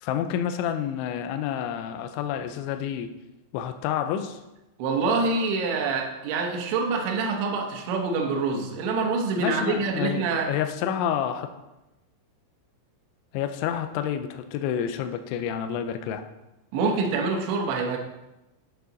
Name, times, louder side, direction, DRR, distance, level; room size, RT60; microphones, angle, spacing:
voice 1, 0.0-3.1 3.5-4.4 9.4-11.5 13.3-16.3, left 9 dB, 85° left, 7 dB, 2.7 m, -29 dB
voice 2, 4.8-10.5 16.7-18.0, right 4 dB, 75° right, 1 dB, 3.0 m, -26 dB
9.5 x 6.4 x 3.9 m, 0.97 s
omnidirectional pair, 6.0 m